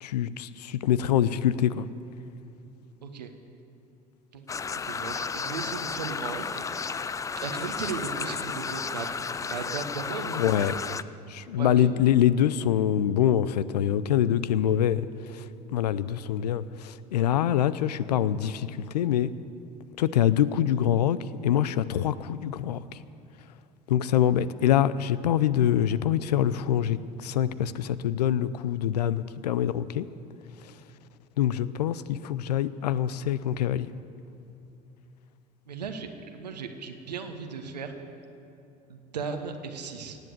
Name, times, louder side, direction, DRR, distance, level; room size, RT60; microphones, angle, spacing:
voice 1, 0.0-1.9 10.3-10.7 11.3-15.1 15.3-15.4 15.7-19.3 20.0-21.2 21.4-22.8 23.9-30.0 31.4-33.9, left 10 dB, 75° left, 17 dB, 0.5 m, -25 dB
sound 1, 4.5-11.0, left 5 dB, 15° left, 0.4 m, -33 dB
voice 2, 4.8-10.8 11.6-11.9 35.7-37.9 38.9-40.2, right 5 dB, 85° right, 6 dB, 1.2 m, -37 dB
17.5 x 8.0 x 8.0 m, 2.7 s
hypercardioid pair, 70°, 21 cm